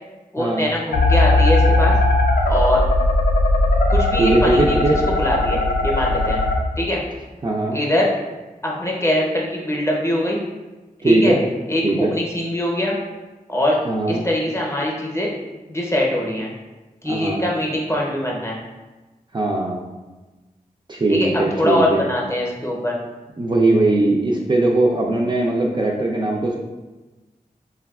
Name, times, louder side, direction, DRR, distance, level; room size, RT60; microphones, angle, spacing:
voice 1, 0.3-1.9 2.5-2.8 3.9-6.4 6.8-7.0 7.7-8.1 8.6-10.4 11.0-11.4 11.7-13.0 13.5-13.8 14.1-15.3 15.7-16.5 17.0-18.6 21.1-21.3 21.5-23.0, left 1 dB, 20° left, -3 dB, 0.6 m, -22 dB
sound 1, 0.9-6.5, left 2 dB, 80° left, 0.4 m, -18 dB
voice 2, 4.2-5.0 7.4-7.8 11.0-11.4 11.8-12.1 13.9-14.2 17.0-17.4 19.3-19.9 20.9-22.0 23.4-26.6, right 2 dB, 30° right, -2 dB, 0.3 m, -19 dB
3.3 x 2.2 x 2.3 m, 1.2 s
wide cardioid pair, 55°, 15 cm